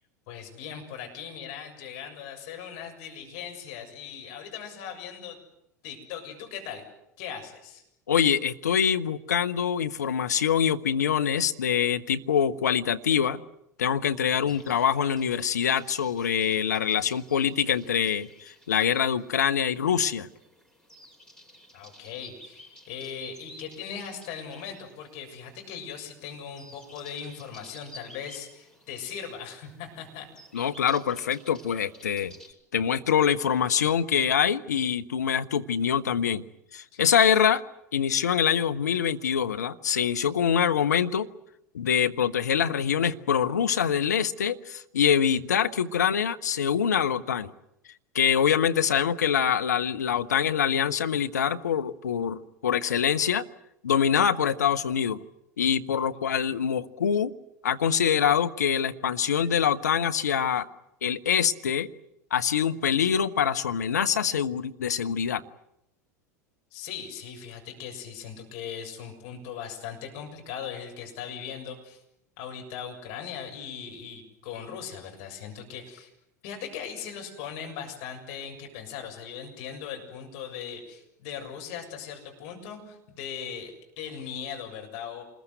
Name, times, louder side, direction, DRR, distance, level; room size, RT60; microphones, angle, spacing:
voice 1, 0.3-5.4 5.8-6.8 7.2-7.8 14.3-14.7 21.7-30.3 36.9-37.0 56.1-56.3 66.7-72.0 72.4-76.1 76.4-85.2, left 7 dB, 50° left, 3 dB, 7.1 m, -39 dB
voice 2, 8.1-13.4 13.8-20.3 30.5-32.3 32.7-36.4 36.7-37.6 37.9-41.3 41.7-47.5 48.1-53.4 53.8-55.2 55.6-57.3 57.6-60.7 61.0-61.9 62.3-65.4, left 8 dB, 70° left, 8 dB, 1.2 m, -25 dB
sound 1, 14.5-32.5, equal, 10° left, 7.0 m, -53 dB
27.5 x 21.0 x 8.0 m, 0.80 s
figure-of-eight pair, 80°, 9 cm